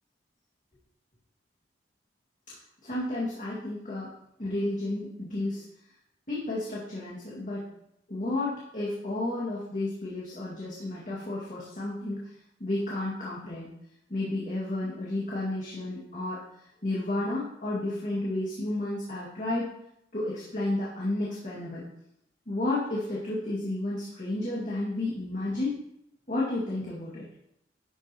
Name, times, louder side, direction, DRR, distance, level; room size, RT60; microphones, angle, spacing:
voice 1, 2.8-4.1 4.4-5.6 6.3-7.6 8.1-12.2 12.6-13.7 14.1-16.4 16.8-19.7 20.1-21.8 22.5-25.7 26.3-27.2, left 2 dB, 45° left, -7 dB, 2.3 m, -32 dB
12.0 x 7.4 x 3.1 m, 0.78 s
head